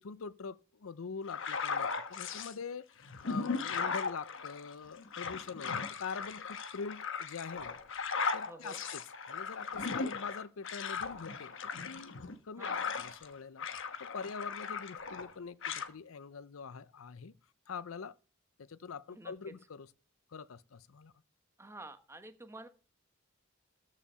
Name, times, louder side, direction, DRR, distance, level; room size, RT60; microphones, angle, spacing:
voice 1, 0.0-7.8 8.3-12.2 12.4-17.3 17.7-18.2 18.6-19.9 20.3-21.1, left 5 dB, 90° left, 0.6 m, -44 dB
sound 1, 1.3-2.5 3.0-13.3 13.6-15.3 15.6-15.9, left 5 dB, 70° left, 1.1 m, -37 dB
voice 2, 8.4-8.8 12.6-12.9 19.1-19.3 21.6-22.7, right 2 dB, 15° right, 1.1 m, -49 dB
14.0 x 5.0 x 5.6 m
head